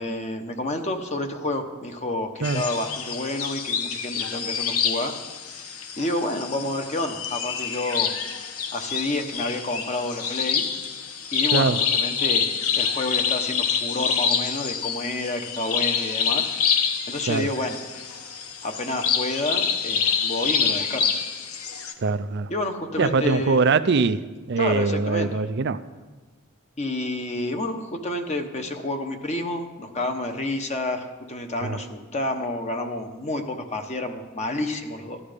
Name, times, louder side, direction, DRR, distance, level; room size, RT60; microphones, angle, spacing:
voice 1, 0.0-5.1 5.5-8.1 8.7-10.7 11.3-17.8 18.6-21.1 22.5-23.6 24.6-25.4 26.8-35.2, left 2 dB, 30° left, 5 dB, 1.1 m, -29 dB
sound 1, 2.4-21.9, left 7 dB, 85° left, 1.2 m, -27 dB
voice 2, 22.0-22.5 23.0-24.2 24.5-25.8 31.6-31.8, right 4 dB, 50° right, 12 dB, 0.5 m, -22 dB
14.0 x 11.5 x 5.1 m, 1.3 s
head